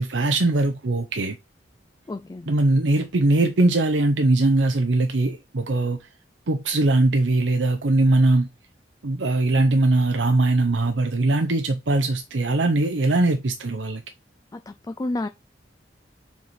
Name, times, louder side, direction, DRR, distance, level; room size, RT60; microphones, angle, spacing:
voice 1, 0.0-1.4 2.5-6.1 6.5-8.5 9.0-14.0, right 2 dB, 85° right, 0.8 m, -21 dB
voice 2, 2.1-2.5 14.5-15.3, left 2 dB, 20° left, 0.3 m, -30 dB
7.2 x 4.7 x 4.2 m
head